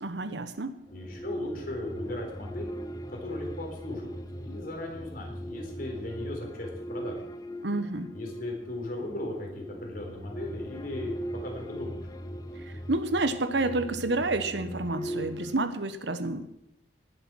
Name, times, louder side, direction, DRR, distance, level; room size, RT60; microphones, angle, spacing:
voice 1, 0.0-0.8 7.6-8.1 12.6-16.5, right 2 dB, 70° right, 11 dB, 1.1 m, -29 dB
voice 2, 0.9-2.7 3.1-7.2 8.1-11.2 11.4-12.0, left 1 dB, 50° left, 1 dB, 4.0 m, -37 dB
sound 1, 0.9-15.6, equal, 20° left, 0.8 m, -39 dB
19.0 x 7.9 x 6.3 m, 0.82 s
head